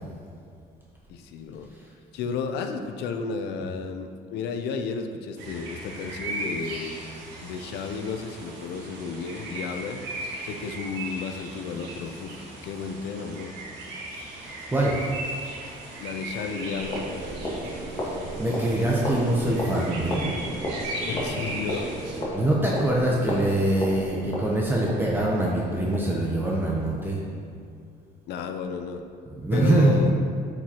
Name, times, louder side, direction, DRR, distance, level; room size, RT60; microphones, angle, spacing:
voice 1, 1.1-1.7 2.1-7.1 7.4-10.0 10.4-13.6 16.0-17.1 21.1-21.9 28.3-29.0 29.5-30.1, left 5 dB, 80° left, 7 dB, 0.6 m, -33 dB
sound 1, 5.4-22.2, right 1 dB, 85° right, 1.4 m, -37 dB
voice 2, 14.4-15.0 18.0-20.3 22.3-27.2 29.4-30.0, right 1 dB, 10° right, -4 dB, 0.8 m, -24 dB
sound 2, 16.5-23.5, right 3 dB, 50° right, 0.6 m, -39 dB
sound 3, 16.7-27.3, left 1 dB, 30° left, 1.5 m, -35 dB
8.8 x 4.7 x 2.9 m, 2.4 s
cardioid pair, 110°, 17 cm